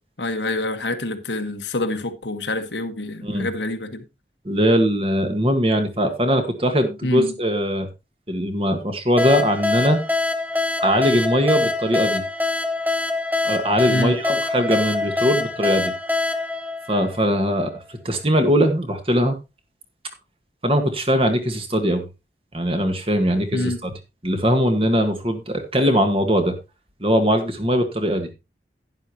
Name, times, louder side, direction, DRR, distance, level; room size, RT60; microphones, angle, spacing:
voice 1, 0.2-4.0 7.0-7.3 13.9-14.2 23.5-23.8, left 2 dB, 85° left, 1.4 m, -26 dB
voice 2, 4.5-7.9 8.3-10.0 10.8-12.2 13.5-15.9 16.9-19.4 20.6-22.0 22.5-23.9 24.2-26.5 27.0-28.3, equal, 30° right, 1.6 m, -20 dB
sound 1, 9.2-17.6, left 3 dB, 10° right, 1.0 m, -24 dB
11.5 x 9.9 x 2.9 m
head